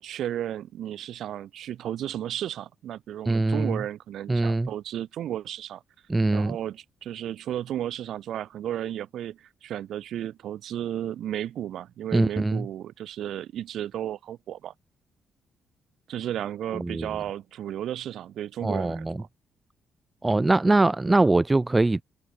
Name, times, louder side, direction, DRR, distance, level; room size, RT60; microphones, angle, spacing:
voice 1, 0.0-5.8 6.3-14.7 16.1-19.3, right 11 dB, 65° right, 7.7 m, -33 dB
voice 2, 3.3-3.8 4.3-4.7 6.1-6.6 12.1-12.7 16.7-17.1 18.6-19.2 20.2-22.0, right 2 dB, 20° right, 2.6 m, -22 dB
hypercardioid pair, 40°, 0 cm